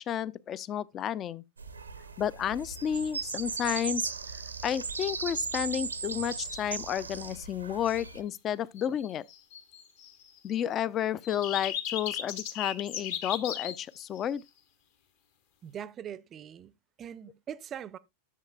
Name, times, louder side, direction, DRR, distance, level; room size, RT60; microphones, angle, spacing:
voice 1, 0.0-1.4 2.2-4.1 4.6-9.2 10.4-14.4, left 9 dB, 30° left, 0.4 m, -31 dB
sound 1, 1.6-8.2, right 4 dB, 80° right, 0.8 m, -37 dB
sound 2, 6.2-6.7 8.8-10.6 11.2-14.3, left 10 dB, 50° left, 1.1 m, -37 dB
voice 2, 15.6-18.0, right 9 dB, 25° right, 0.6 m, -42 dB
11.0 x 7.2 x 2.3 m
figure-of-eight pair, 90°, 0 cm